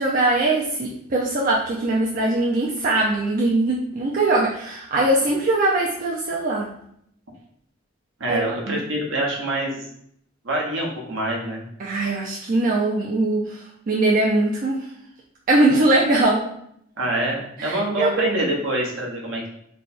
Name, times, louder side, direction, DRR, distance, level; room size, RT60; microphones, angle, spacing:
voice 1, 0.0-6.7 8.3-8.8 11.8-13.4 13.9-14.8 15.5-16.4 17.6-18.1, right 2 dB, 45° right, -3 dB, 0.5 m, -21 dB
voice 2, 8.2-9.8 10.4-11.6 17.0-19.5, right 1 dB, 70° right, -2 dB, 1.0 m, -25 dB
3.3 x 2.3 x 4.1 m, 0.70 s
head